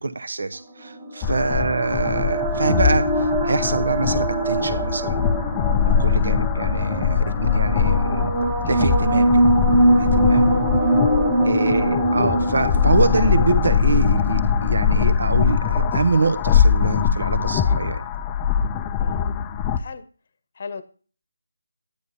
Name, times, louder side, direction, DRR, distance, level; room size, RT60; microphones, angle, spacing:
voice 1, 0.0-5.2 5.8-8.3 8.7-9.4 10.0-10.5 11.4-18.0, right 3 dB, 65° right, 11 dB, 0.7 m, -24 dB
sound 1, 0.8-14.9, right 1 dB, 10° right, 1.0 m, -23 dB
sound 2, 1.2-19.8, left 7 dB, 15° left, 0.4 m, -22 dB
voice 2, 10.4-11.0 11.6-11.9 19.0-19.3 19.8-20.1 20.5-20.8, left 4 dB, 45° left, 14 dB, 0.9 m, -38 dB
9.9 x 9.3 x 2.7 m, 0.39 s
figure-of-eight pair, 160°, 0 cm